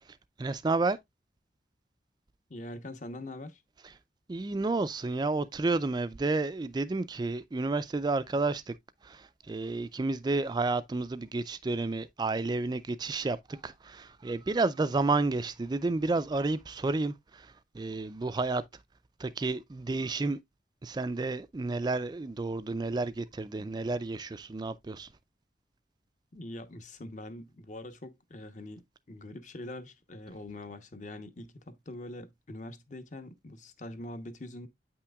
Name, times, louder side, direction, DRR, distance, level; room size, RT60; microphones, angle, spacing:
voice 1, 0.4-1.0 4.3-8.7 9.0-18.6 19.2-20.4 20.8-25.1, right 3 dB, 25° right, 0.3 m, -31 dB
voice 2, 2.5-3.6 26.3-28.8 29.1-34.7, left 1 dB, 45° left, 0.9 m, -43 dB
8.6 x 5.8 x 2.3 m
head